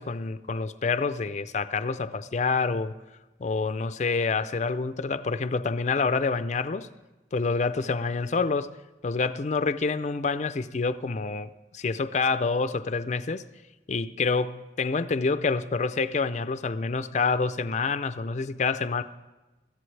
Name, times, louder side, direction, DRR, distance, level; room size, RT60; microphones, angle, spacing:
voice 1, 0.0-2.9 3.4-6.9 7.3-8.7 9.0-13.4 13.9-19.0, left 4 dB, 40° left, 11 dB, 0.4 m, -27 dB
21.5 x 14.0 x 3.3 m, 1.1 s
head